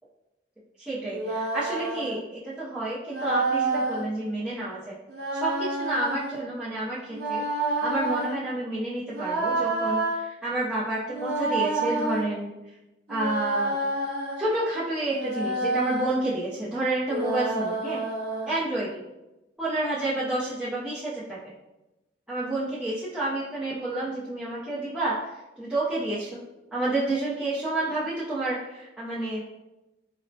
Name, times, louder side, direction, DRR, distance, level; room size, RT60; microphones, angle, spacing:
voice 1, 0.8-5.0 5.3-7.4 7.8-12.5 13.1-13.8 14.4-18.0 18.5-19.0 19.6-21.5 22.3-26.4 26.7-29.4, right 2 dB, 5° right, -11 dB, 0.5 m, -29 dB
sound 1, 1.1-2.2 3.1-4.0 5.1-6.3 7.1-8.3 9.1-10.2 11.1-12.2 13.1-14.5 15.1-16.2 17.1-18.5, right 2 dB, 60° right, 0.8 m, -28 dB
4.0 x 2.0 x 2.6 m, 1.0 s
head